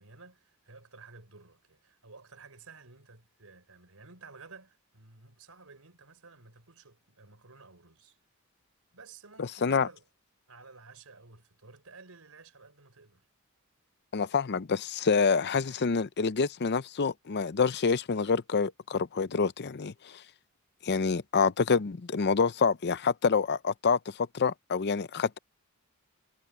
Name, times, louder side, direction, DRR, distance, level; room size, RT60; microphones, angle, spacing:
voice 1, 0.0-8.2 8.9-10.0 10.5-13.2, right 4 dB, 75° right, 4.2 m, -53 dB
voice 2, 9.4-9.9 14.1-20.1 20.8-25.4, left 5 dB, 50° left, 0.6 m, -27 dB
head